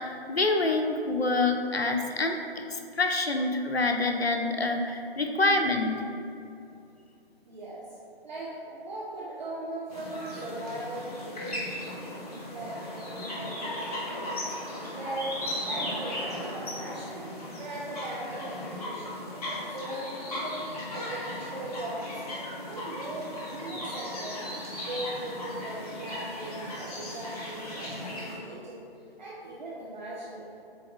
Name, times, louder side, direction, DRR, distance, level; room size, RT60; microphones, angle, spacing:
voice 1, 0.0-2.4 2.7-5.9, left 2 dB, 80° left, 4 dB, 0.8 m, -26 dB
voice 2, 7.5-7.9 8.2-12.1 12.5-14.5 14.9-17.3 17.6-19.2 19.7-20.6 20.9-24.5 24.8-28.8 29.2-30.5, right 1 dB, 45° right, -6 dB, 1.0 m, -39 dB
sound 1, 9.9-28.4, left 1 dB, 40° left, 1.4 m, -37 dB
7.7 x 3.4 x 3.6 m, 2.6 s
figure-of-eight pair, 145°, 31 cm